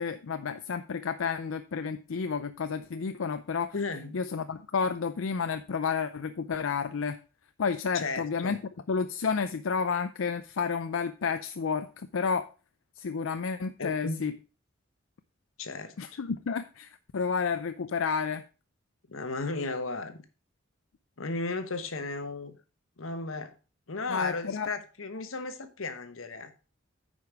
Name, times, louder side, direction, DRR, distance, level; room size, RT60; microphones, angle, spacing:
voice 1, 0.0-3.7 4.1-7.2 7.6-8.6 8.9-12.5 13.0-14.3 16.0-18.4 24.1-24.7, left 5 dB, 75° left, 0.5 m, -31 dB
voice 2, 3.7-4.2 7.9-8.6 13.8-14.3 15.6-16.2 19.1-20.2 21.2-22.6 23.0-23.5 23.9-26.5, left 3 dB, 90° left, 1.2 m, -35 dB
9.3 x 5.2 x 4.6 m
head